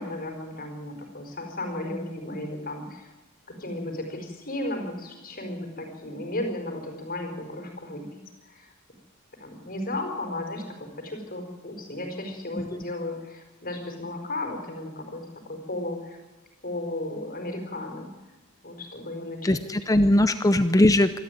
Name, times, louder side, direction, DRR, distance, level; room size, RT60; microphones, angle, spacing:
voice 1, 0.0-3.1 3.5-8.7 9.4-16.2 16.6-18.1 18.6-19.6 20.4-20.5, left 1 dB, 40° left, 3 dB, 4.7 m, -34 dB
voice 2, 19.4-21.2, left 1 dB, 15° left, 11 dB, 0.7 m, -20 dB
26.0 x 13.5 x 9.3 m, 1.1 s
head